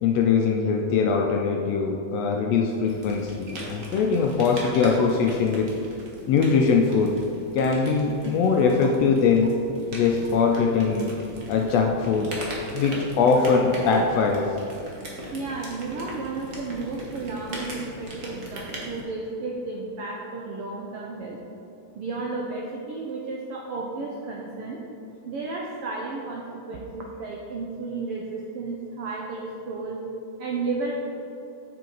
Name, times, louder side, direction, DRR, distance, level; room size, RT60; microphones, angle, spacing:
voice 1, 0.0-5.7 6.3-7.1 7.5-9.5 9.9-11.1 11.5-12.3 12.7-14.5, left 5 dB, 80° left, 1 dB, 1.5 m, -22 dB
sound 1, 2.8-19.0, right 1 dB, 55° right, 0.9 m, -39 dB
voice 2, 15.3-21.4 21.9-24.8 25.3-30.0 30.4-31.1, right 3 dB, 85° right, -1 dB, 1.2 m, -33 dB
7.6 x 6.8 x 3.9 m, 2.7 s
omnidirectional pair, 3.4 m